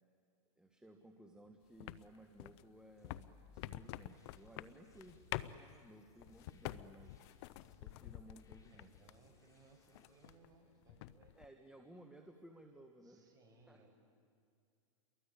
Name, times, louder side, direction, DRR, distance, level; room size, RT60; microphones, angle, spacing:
voice 1, 0.6-7.3 7.7-9.1 11.3-13.3 13.6-13.9, right 1 dB, 5° right, 3 dB, 1.6 m, -59 dB
sound 1, 1.8-9.3 9.7-10.6 10.8-11.5, left 15 dB, 55° left, 0.9 m, -48 dB
sound 2, 3.0-10.3, left 4 dB, 20° left, 3.9 m, -69 dB
voice 2, 8.7-11.3 13.0-13.9, right 3 dB, 20° right, 1 dB, 6.4 m, -66 dB
29.5 x 23.0 x 8.6 m, 2.4 s
hypercardioid pair, 130°, 17 cm